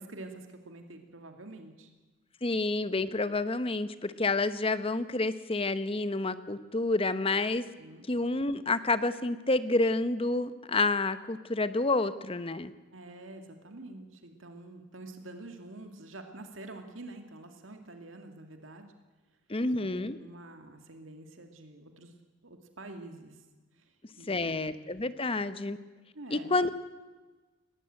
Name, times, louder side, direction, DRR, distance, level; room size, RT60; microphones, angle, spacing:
voice 1, 0.0-1.9 7.8-8.0 12.9-18.9 19.8-19.9 20.2-22.1 22.4-23.4 23.7-25.1 26.1-26.5, right 2 dB, 85° right, 5 dB, 2.2 m, -47 dB
voice 2, 2.4-7.6 8.1-12.7 19.5-20.2 24.3-25.8 26.3-26.7, left 2 dB, 30° left, 13 dB, 0.9 m, -29 dB
20.5 x 15.5 x 9.1 m, 1.3 s
head